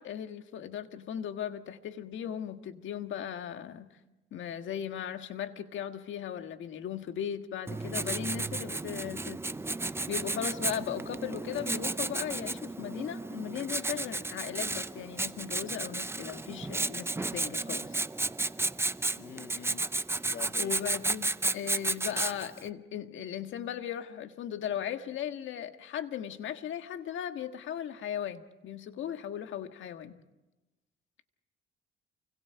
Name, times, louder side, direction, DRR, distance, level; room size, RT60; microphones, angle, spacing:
voice 1, 0.0-3.9 4.3-9.4 10.1-18.0 20.6-30.2, left 9 dB, 75° left, 1.7 m, -37 dB
Writing, 7.7-22.6, right 2 dB, 10° right, 0.7 m, -33 dB
voice 2, 19.2-19.9 20.3-20.7, left 9 dB, 50° left, 0.7 m, -45 dB
29.0 x 25.0 x 4.7 m
cardioid pair, 90°, 20 cm